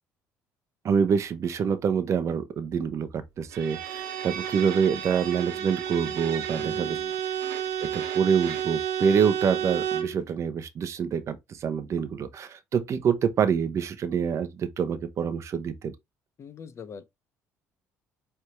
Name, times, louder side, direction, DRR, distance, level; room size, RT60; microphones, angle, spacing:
voice 1, 0.8-7.0 7.9-15.9, right 7 dB, 50° right, 0.7 m, -26 dB
Bowed string instrument, 3.5-10.2, right 9 dB, 80° right, 1.0 m, -31 dB
voice 2, 6.5-7.1 16.4-17.0, left 6 dB, 45° left, 0.9 m, -43 dB
4.5 x 3.4 x 3.0 m
supercardioid pair, 80°, 6 cm